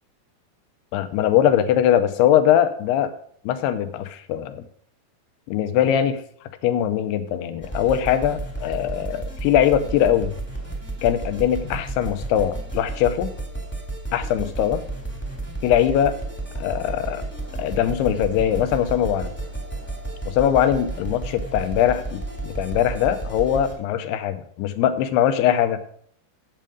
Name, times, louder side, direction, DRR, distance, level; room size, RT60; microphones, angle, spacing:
voice 1, 0.9-3.1 3.5-4.6 5.5-6.2 6.6-10.3 11.0-13.3 14.1-14.8 15.6-16.2 16.6-17.2 17.6-19.3 20.3-25.8, left 10 dB, 80° left, 10 dB, 2.7 m, -21 dB
sound 1, 7.6-23.7, right 2 dB, 5° left, 1.0 m, -32 dB
9.1 x 7.6 x 5.2 m, 0.62 s
omnidirectional pair, 4.8 m